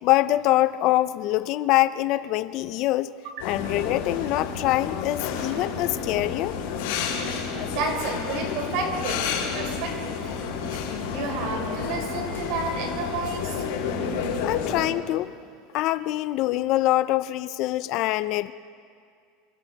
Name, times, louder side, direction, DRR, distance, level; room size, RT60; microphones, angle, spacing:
voice 1, 0.0-3.1 3.4-6.6 14.4-15.3 15.7-18.5, left 15 dB, 45° left, 14 dB, 0.6 m, -24 dB
voice 2, 3.2-3.7 7.7-10.8 11.1-14.4, right 3 dB, 55° right, 2 dB, 4.8 m, -32 dB
sound 1, 3.4-14.8, left 6 dB, 85° left, 6.0 m, -30 dB
28.0 x 25.0 x 4.1 m, 2.2 s
supercardioid pair, 160°, 0 cm